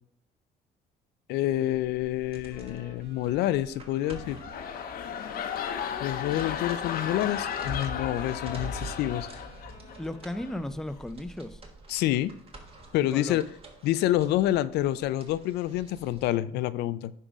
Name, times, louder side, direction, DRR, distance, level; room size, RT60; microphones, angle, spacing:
voice 1, 1.3-4.4 6.0-9.3 11.9-12.3 12.9-13.4 13.8-17.1, left 14 dB, 80° left, 0.4 m, -27 dB
sound 1, 1.5-16.3, right 1 dB, 35° right, 1.4 m, -46 dB
sound 2, 2.5-10.9, right 1 dB, 80° right, 3.2 m, -52 dB
sound 3, 4.0-10.0 10.3-10.6, left 8 dB, 60° left, 0.8 m, -35 dB
voice 2, 10.0-11.6 13.0-13.4, left 1 dB, 5° left, 0.4 m, -35 dB
10.0 x 3.7 x 5.0 m
cardioid pair, 110°, 17 cm